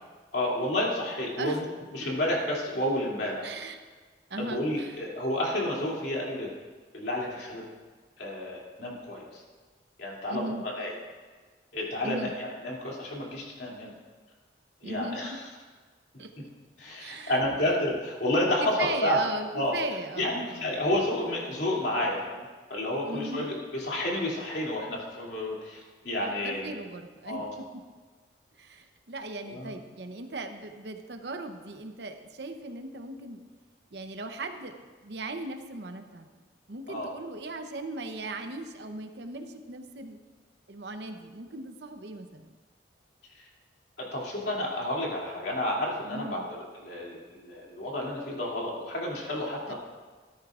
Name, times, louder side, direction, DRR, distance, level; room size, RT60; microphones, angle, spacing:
voice 1, 0.3-1.6 1.9-3.5 4.4-6.5 6.9-7.6 8.2-9.4 10.0-10.9 11.7-13.9 14.8-15.3 16.8-19.2 19.5-19.7 20.2-22.4 22.7-26.7 27.2-27.5 29.5-29.7 36.9-37.1 43.4-43.5 44.0-49.7, left 1 dB, 70° left, -3 dB, 2.7 m, -30 dB
voice 2, 3.4-3.8 4.3-5.0 10.3-10.7 12.0-12.4 14.8-15.2 16.2-16.3 17.0-17.3 18.6-20.8 23.0-23.5 26.4-27.8 28.6-33.4 33.9-36.3 36.7-40.2 40.7-42.6 46.1-46.5 49.7-49.8, right 2 dB, 70° right, 6 dB, 0.8 m, -38 dB
14.0 x 13.0 x 2.5 m, 1.4 s
head